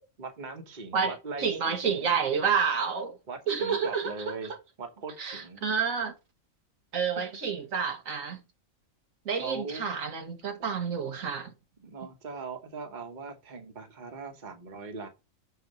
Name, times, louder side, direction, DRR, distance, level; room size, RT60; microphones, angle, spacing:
voice 1, 0.2-2.1 3.3-5.6 9.3-9.8 11.8-15.1, right 4 dB, 35° right, 1.3 m, -40 dB
voice 2, 0.9-3.2 3.5-4.3 5.2-6.1 6.9-8.4 9.2-11.5, right 6 dB, 75° right, 1.6 m, -29 dB
6.7 x 4.3 x 5.3 m
omnidirectional pair, 1.4 m